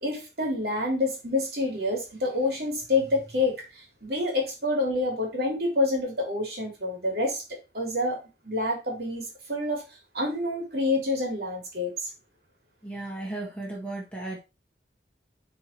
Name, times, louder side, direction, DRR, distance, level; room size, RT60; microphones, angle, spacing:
voice 1, 0.0-7.4 7.7-9.8 10.1-12.1, left 2 dB, 65° right, 0 dB, 3.2 m, -28 dB
voice 2, 12.8-14.4, right 2 dB, 5° left, -3 dB, 1.6 m, -35 dB
6.1 x 4.6 x 4.5 m, 0.28 s
head